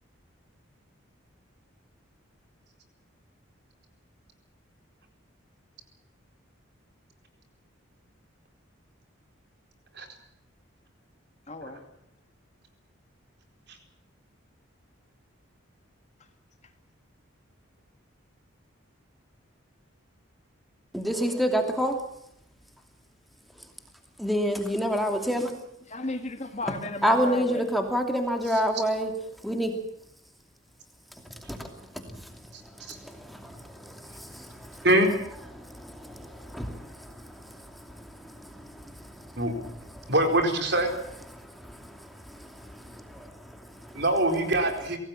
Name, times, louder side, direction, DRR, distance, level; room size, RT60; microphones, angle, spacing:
voice 1, 11.5-11.8 25.9-27.7, left 2 dB, 35° left, 7 dB, 2.0 m, -34 dB
voice 2, 20.9-22.0 24.2-25.5 27.0-29.1 29.4-29.7 31.5-34.9 35.5-40.1 41.3-44.0, equal, ahead, 4 dB, 2.7 m, -30 dB
voice 3, 40.1-40.9 43.9-45.0, right 1 dB, 50° right, 5 dB, 4.4 m, -23 dB
25.5 x 18.0 x 7.3 m, 0.77 s
head